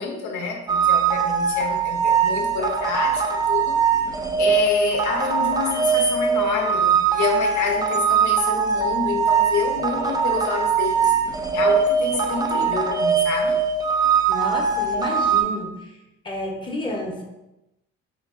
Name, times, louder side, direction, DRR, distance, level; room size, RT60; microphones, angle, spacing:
voice 1, 0.0-3.8 4.4-11.1 11.5-13.6, left 5 dB, 70° left, 1 dB, 0.6 m, -28 dB
sound 1, 0.7-15.4, right 6 dB, 15° right, 0.3 m, -21 dB
voice 2, 14.3-16.0 16.2-17.2, left 1 dB, 15° left, -1 dB, 0.7 m, -31 dB
4.4 x 2.3 x 2.4 m, 0.94 s
cardioid pair, 90°, 30 cm